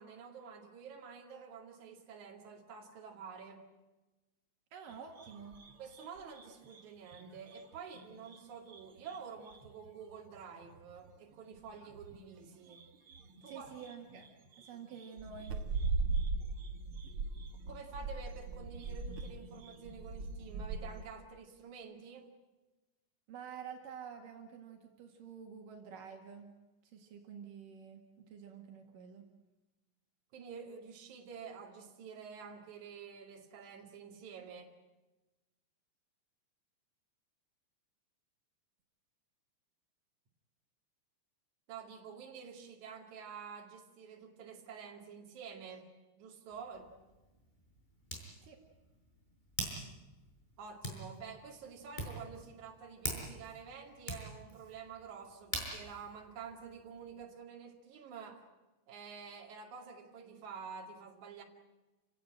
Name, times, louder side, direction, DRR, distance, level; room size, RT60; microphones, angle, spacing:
voice 1, 0.0-3.7 5.8-12.9 13.4-13.7 17.7-22.3 30.3-34.7 41.7-45.9 46.2-46.9 50.6-58.4 58.9-61.4, right 6 dB, 65° right, 2 dB, 3.7 m, -49 dB
voice 2, 4.7-5.6 13.5-14.3 14.6-15.6 23.3-26.5 26.8-29.3 48.4-48.6, right 7 dB, 85° right, 3 dB, 3.5 m, -49 dB
sound 1, 4.9-8.4 8.7-12.4 12.7-21.0, right 3 dB, 50° right, 2.0 m, -40 dB
Hands, 46.5-57.2, equal, 15° left, 5.3 m, -45 dB
28.5 x 17.0 x 8.8 m, 1.1 s
omnidirectional pair, 3.7 m